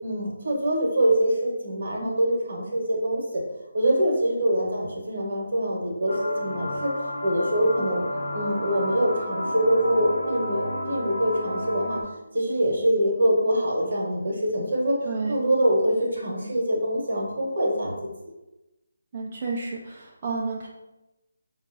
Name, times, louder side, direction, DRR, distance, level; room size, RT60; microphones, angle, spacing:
voice 1, 0.0-3.4 3.7-6.9 7.2-8.0 8.3-12.0 12.3-15.0 15.3-18.1, right 1 dB, 60° right, -2 dB, 1.0 m, -24 dB
sound 1, 6.1-12.0, left 1 dB, 85° left, 0.6 m, -31 dB
voice 2, 15.0-15.4 19.1-20.7, right 4 dB, 35° right, -3 dB, 0.4 m, -31 dB
4.4 x 2.4 x 2.5 m, 1.0 s
figure-of-eight pair, 155°, 0 cm